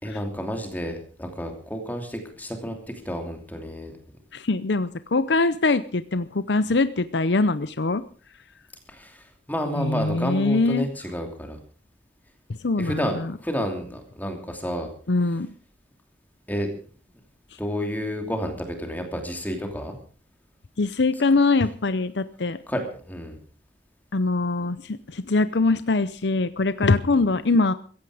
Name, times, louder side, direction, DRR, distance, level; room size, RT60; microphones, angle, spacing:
voice 1, 0.0-2.8 3.0-3.9 8.9-11.6 12.8-14.9 16.5-16.7 17.6-20.0 22.7-23.4 27.1-27.2, equal, 10° left, 4 dB, 2.9 m, -30 dB
voice 2, 4.3-8.0 9.8-10.9 12.6-13.3 15.1-15.5 20.8-22.6 24.1-27.7, left 3 dB, 80° left, 14 dB, 0.7 m, -23 dB
16.5 x 15.5 x 5.0 m, 0.41 s
head